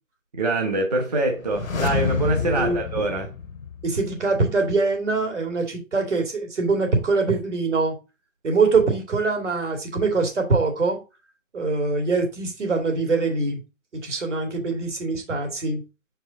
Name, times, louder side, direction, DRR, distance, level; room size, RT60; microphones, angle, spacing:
voice 1, 0.3-3.3, right 2 dB, 30° right, 1.0 m, -24 dB
sound 1, 1.4-4.3 4.6-4.7, left 6 dB, 70° left, 0.9 m, -28 dB
voice 2, 2.4-2.8 3.8-7.9 8.4-11.0 11.5-13.6 13.9-15.8, right 3 dB, 60° right, 2.6 m, -23 dB
6.8 x 4.7 x 4.0 m
figure-of-eight pair, 165°, 41 cm